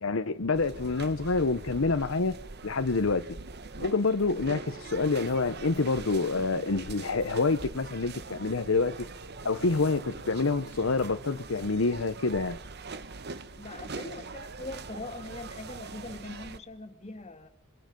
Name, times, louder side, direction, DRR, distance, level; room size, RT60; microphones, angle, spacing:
voice 1, 0.0-2.4 2.6-3.4 3.8-9.1 9.4-12.6, left 3 dB, 70° left, 0.8 m, -27 dB
sound 1, 0.5-16.6, right 3 dB, 50° right, 1.1 m, -43 dB
voice 2, 13.6-17.5, left 2 dB, 30° left, 1.8 m, -42 dB
26.0 x 24.0 x 5.3 m
head